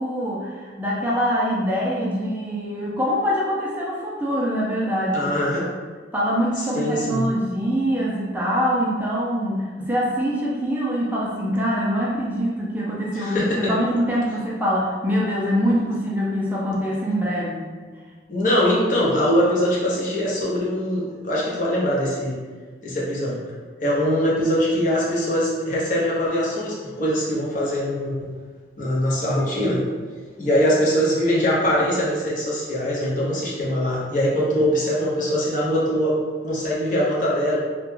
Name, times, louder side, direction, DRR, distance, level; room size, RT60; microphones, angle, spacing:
voice 1, 0.0-5.3 6.1-17.7, equal, 10° right, -6 dB, 0.3 m, -24 dB
voice 2, 5.1-5.7 6.6-7.3 13.1-13.7 18.3-22.4 22.8-23.4 23.8-28.3 28.8-29.8 30.4-37.6, equal, 50° left, -5 dB, 0.6 m, -22 dB
2.2 x 2.1 x 3.1 m, 1.5 s
head